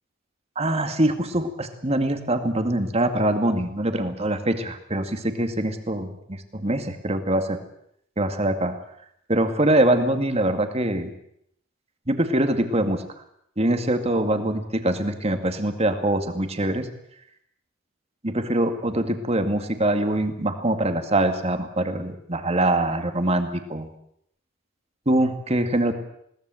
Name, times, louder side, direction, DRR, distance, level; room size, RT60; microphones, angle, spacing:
voice 1, 0.6-7.6 8.2-8.8 9.3-11.1 12.1-13.1 13.6-16.9 18.2-23.9 25.1-25.9, right 1 dB, 30° right, 7 dB, 2.2 m, -23 dB
21.5 x 18.0 x 7.8 m, 0.71 s
head